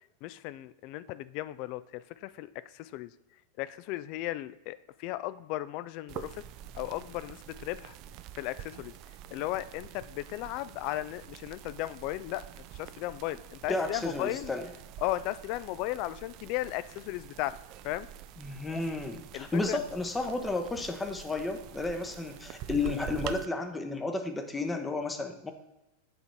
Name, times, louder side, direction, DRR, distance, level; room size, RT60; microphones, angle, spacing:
voice 1, 0.2-3.1 3.6-6.4 6.7-8.0 8.3-8.9 9.3-12.5 12.7-14.5 15.0-17.6 17.8-18.1 19.3-19.8, left 15 dB, 45° left, 16 dB, 0.3 m, -36 dB
sound 1, 6.1-23.5, right 12 dB, 40° right, 0.3 m, -46 dB
voice 2, 13.7-14.7 18.4-25.5, left 3 dB, 10° left, 6 dB, 0.8 m, -32 dB
7.8 x 4.0 x 4.4 m, 0.95 s
figure-of-eight pair, 90°, 0 cm